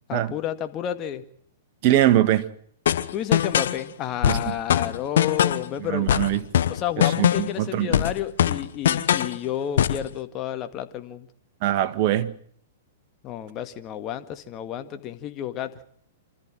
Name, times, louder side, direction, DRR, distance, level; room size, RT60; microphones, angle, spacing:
voice 1, 0.1-1.2 3.1-6.1 6.7-11.3 13.2-15.7, left 10 dB, 35° left, 2.0 m, -31 dB
voice 2, 1.8-2.4 4.3-4.5 5.8-6.4 7.0-8.0 11.6-12.3, right 13 dB, 45° right, 1.8 m, -22 dB
sound 1, 2.9-3.8 4.2-5.7 6.1-7.6 7.9-9.4 9.8-10.1, left 10 dB, 70° left, 1.1 m, -22 dB
27.5 x 14.0 x 7.6 m
hypercardioid pair, 115°, 0 cm